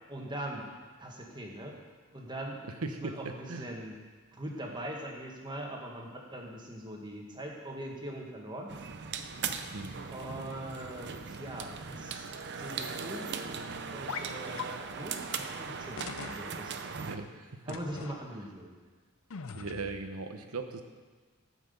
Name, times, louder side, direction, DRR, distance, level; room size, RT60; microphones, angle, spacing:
voice 1, 0.1-0.7 1.0-1.8 2.1-2.6 3.0-4.0 4.3-8.7 10.1-12.3 12.6-13.5 13.8-16.8 17.7-18.8, right 1 dB, 20° right, 0 dB, 1.6 m, -41 dB
voice 2, 2.6-3.7 9.7-9.9 17.0-17.7 19.5-20.8, right 3 dB, 80° right, 7 dB, 1.0 m, -39 dB
sound 1, 8.7-17.2, right 5 dB, 55° right, 0.7 m, -39 dB
sound 2, 14.1-14.3 14.6-14.7 15.3-15.4 16.0-16.5 17.7-18.2 19.3-20.0, left 6 dB, 65° left, 0.6 m, -40 dB
13.5 x 6.0 x 6.9 m, 1.4 s
head